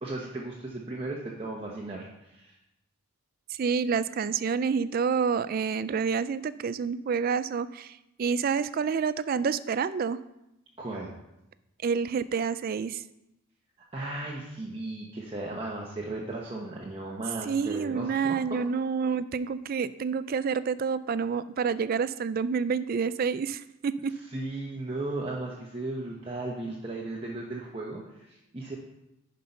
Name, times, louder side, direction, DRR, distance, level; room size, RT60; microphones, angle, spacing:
voice 1, 0.0-2.5 10.8-11.1 13.9-18.6 24.3-28.8, right 2 dB, 25° right, -3 dB, 0.9 m, -36 dB
voice 2, 3.5-10.2 11.8-13.0 17.5-24.1, right 6 dB, 40° right, 15 dB, 0.3 m, -28 dB
10.0 x 5.3 x 5.4 m, 0.90 s
head